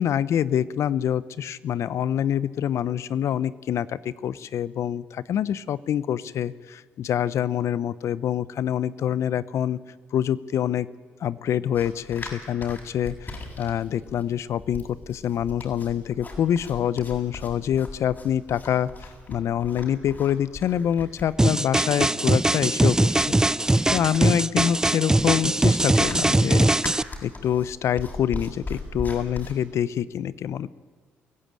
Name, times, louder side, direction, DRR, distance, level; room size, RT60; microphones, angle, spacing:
voice 1, 0.0-9.8 10.1-10.9 11.2-26.7 27.2-30.7, left 9 dB, 65° left, 18 dB, 0.8 m, -26 dB
sound 1, 11.7-29.5, left 2 dB, 35° left, 7.6 m, -39 dB
sound 2, 21.4-27.0, right 2 dB, 10° right, 0.6 m, -21 dB
23.0 x 15.5 x 9.0 m, 1.4 s
hypercardioid pair, 55°, 5 cm